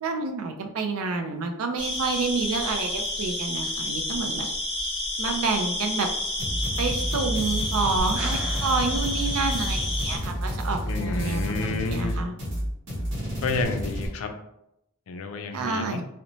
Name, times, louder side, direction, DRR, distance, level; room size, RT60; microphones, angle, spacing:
voice 1, 0.0-4.5 5.2-6.1 6.8-12.3 15.5-16.0, right 4 dB, 75° right, 5 dB, 0.4 m, -29 dB
sound 1, 1.8-10.2, left 1 dB, 25° left, 0.8 m, -30 dB
sound 2, 6.4-14.1, equal, 55° right, 0.8 m, -30 dB
sound 3, 8.0-10.3 13.6-13.7, equal, 5° right, 0.4 m, -40 dB
voice 2, 10.9-12.2 13.4-14.3 15.1-16.0, left 3 dB, 70° left, 6 dB, 0.4 m, -30 dB
2.9 x 2.1 x 2.6 m, 0.81 s
head